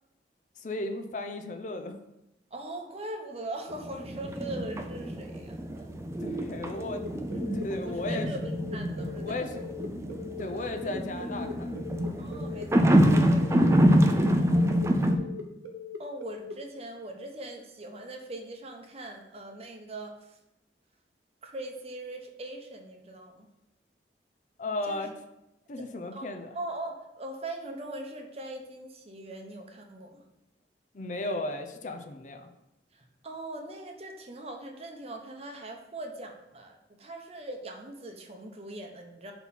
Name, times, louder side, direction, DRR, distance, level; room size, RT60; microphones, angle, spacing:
voice 1, 0.6-1.9 6.2-7.0 7.5-8.3 9.2-9.6 10.4-11.8 24.6-25.1 25.7-26.6 30.9-32.5, left 2 dB, 45° left, 6 dB, 0.5 m, -35 dB
voice 2, 2.5-5.9 7.8-9.6 10.5-10.7 12.2-13.6 14.4-15.0 16.0-20.4 21.4-23.5 24.8-25.2 25.7-25.8 26.1-30.2 32.9-39.3, right 1 dB, 35° right, 3 dB, 0.8 m, -41 dB
sound 1, 3.7-15.2, equal, 15° right, 0.4 m, -26 dB
sound 2, 6.7-16.5, left 4 dB, 85° right, 0.8 m, -41 dB
4.4 x 4.1 x 5.6 m, 0.90 s
head